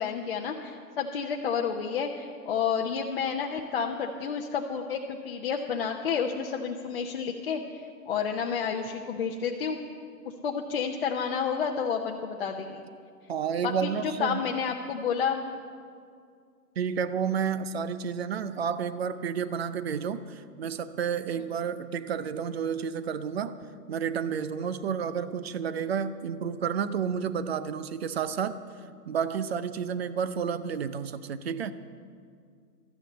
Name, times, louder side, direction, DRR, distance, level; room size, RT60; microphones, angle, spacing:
voice 1, 0.0-9.8 10.4-12.8 13.6-15.4, left 6 dB, 35° left, 1 dB, 0.8 m, -30 dB
voice 2, 13.3-14.4 16.8-23.6 23.9-28.6 29.0-31.7, right 7 dB, 40° right, 13 dB, 0.6 m, -31 dB
13.0 x 9.8 x 7.9 m, 2.2 s
hypercardioid pair, 150°, 48 cm